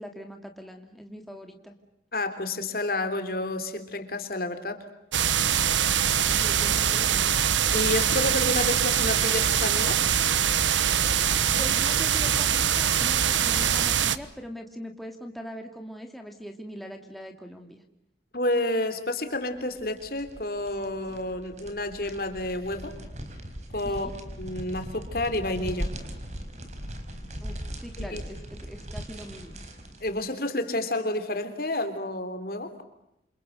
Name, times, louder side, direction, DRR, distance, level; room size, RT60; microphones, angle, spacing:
voice 1, 0.0-1.8 6.3-7.4 11.6-17.8 23.8-24.2 27.4-29.6, equal, ahead, 3 dB, 2.4 m, -41 dB
voice 2, 2.1-4.8 7.7-10.1 18.3-22.9 23.7-24.1 24.4-25.9 28.1-28.2 30.0-32.7, left 1 dB, 55° left, 9 dB, 3.4 m, -30 dB
sound 1, 5.1-14.2, right 9 dB, 90° right, 1.2 m, -23 dB
sound 2, 19.6-30.2, equal, 40° right, 4.7 m, -39 dB
28.5 x 28.0 x 6.6 m, 0.83 s
head